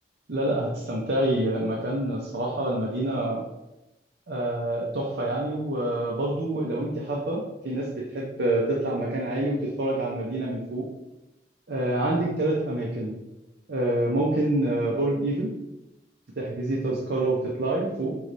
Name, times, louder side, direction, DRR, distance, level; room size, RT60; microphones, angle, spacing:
voice 1, 0.3-3.4 4.3-10.8 11.7-13.2 13.7-15.5 16.4-18.2, right 1 dB, 60° right, -3 dB, 0.6 m, -27 dB
4.7 x 3.1 x 2.6 m, 0.93 s
head